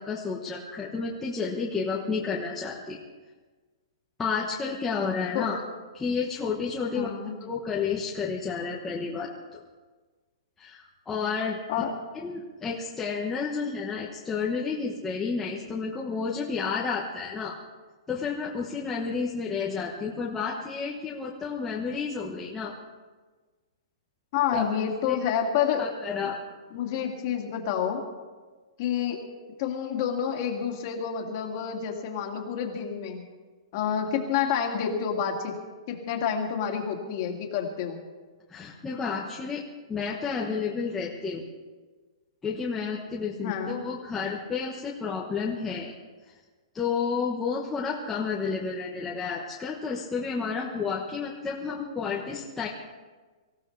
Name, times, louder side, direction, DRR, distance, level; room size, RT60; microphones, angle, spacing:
voice 1, 0.0-3.0 4.2-5.6 5.9-7.1 7.4-9.6 10.6-11.6 12.2-17.6 18.1-22.8 24.5-24.7 25.0-25.2 25.8-26.4 38.5-39.6 39.9-41.4 42.4-45.9 46.7-52.7, left 5 dB, 10° left, -4 dB, 1.0 m, -31 dB
voice 2, 6.9-7.3 11.7-11.9 24.3-25.9 26.7-28.0 28.8-29.2 29.6-33.2 33.7-35.5 35.9-38.0 43.4-43.8, left 8 dB, 30° left, 2 dB, 2.1 m, -28 dB
24.5 x 15.0 x 3.3 m, 1.3 s
hypercardioid pair, 175°, 3 cm